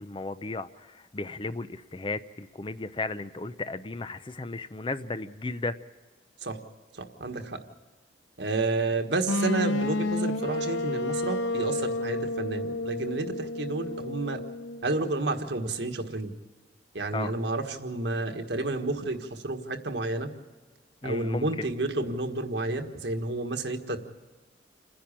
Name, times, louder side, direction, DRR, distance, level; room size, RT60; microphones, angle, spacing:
voice 1, 0.0-5.8 17.1-17.3 21.0-21.7, left 3 dB, 25° left, 12 dB, 0.5 m, -35 dB
voice 2, 6.9-7.6 8.4-14.4 14.8-16.3 16.9-20.3 21.0-24.0, right 2 dB, 70° right, 5 dB, 1.6 m, -30 dB
sound 1, 9.2-15.1, left 2 dB, 90° left, 0.8 m, -30 dB
29.0 x 10.5 x 8.7 m, 1.3 s
head